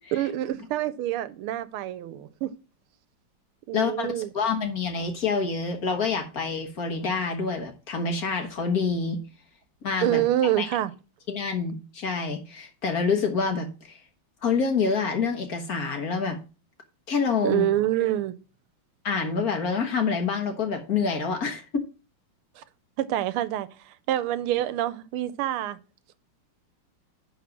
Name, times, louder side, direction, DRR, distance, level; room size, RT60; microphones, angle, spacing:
voice 1, 0.1-2.5 3.7-4.3 10.0-10.9 17.4-18.3 22.6-22.7 23.0-23.7 24.1-25.8, right 13 dB, 90° right, 1.6 m, -26 dB
voice 2, 3.7-4.1 4.3-9.2 9.8-10.2 10.6-10.7 11.3-14.0 14.4-16.4 17.1-17.7 19.0-21.8, left 5 dB, 50° left, 1.5 m, -27 dB
10.0 x 3.9 x 5.9 m
omnidirectional pair, 2.4 m